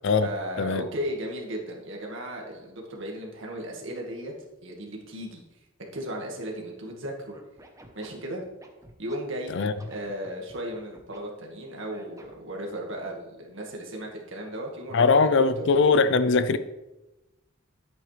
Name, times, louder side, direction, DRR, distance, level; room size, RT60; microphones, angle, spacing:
voice 1, 0.2-4.3 4.6-5.4 5.9-7.4 7.9-8.4 9.0-9.5 9.9-15.3 15.6-15.7, right 1 dB, 65° right, 2.0 m, -35 dB
Scratching (performance technique), 7.3-9.2 9.6-11.2 11.9-12.5, right 1 dB, 15° right, 1.0 m, -50 dB
voice 2, 14.9-16.6, left 4 dB, 60° left, 0.5 m, -21 dB
11.0 x 8.3 x 3.4 m
head